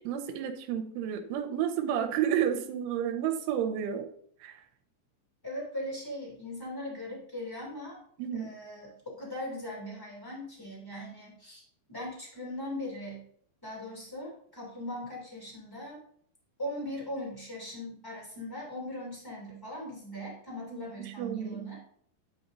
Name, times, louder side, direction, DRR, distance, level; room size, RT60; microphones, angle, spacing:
voice 1, 0.1-4.1 4.4-4.6 8.2-8.6 20.7-21.7, right 9 dB, 90° right, 6 dB, 3.2 m, -31 dB
voice 2, 5.4-8.0 8.3-11.6 11.9-13.2 13.6-16.0 16.6-21.8, left 1 dB, 25° left, -4 dB, 0.4 m, -39 dB
10.5 x 5.1 x 2.6 m, 0.63 s
omnidirectional pair, 5.5 m